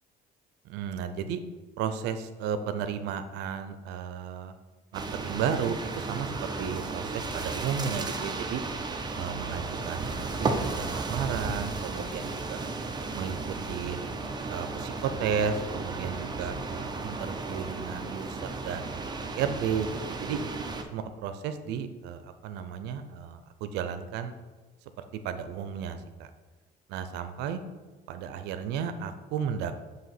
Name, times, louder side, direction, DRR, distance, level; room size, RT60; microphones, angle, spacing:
voice 1, 0.7-1.4 1.8-4.5 4.9-5.8 6.1-8.6 9.1-12.6 13.1-13.4 13.7-14.0 14.5-18.9 19.4-20.4 20.9-24.3 25.2-26.3 26.9-27.6 28.1-29.7, right 7 dB, 90° right, 10 dB, 0.6 m, -33 dB
sound 1, 4.9-20.8, right 3 dB, 25° right, 0.6 m, -34 dB
7.5 x 2.9 x 5.9 m, 1.3 s
cardioid pair, 110°, 17 cm